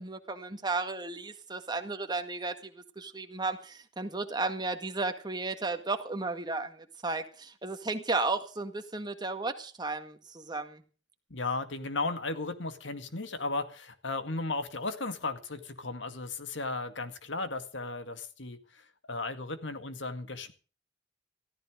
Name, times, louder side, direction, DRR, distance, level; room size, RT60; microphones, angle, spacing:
voice 1, 0.0-10.8, right 3 dB, 20° right, 6 dB, 1.8 m, -34 dB
voice 2, 11.3-18.8 19.1-20.5, left 3 dB, 75° left, 9 dB, 2.1 m, -35 dB
15.0 x 14.0 x 5.1 m, 0.37 s
head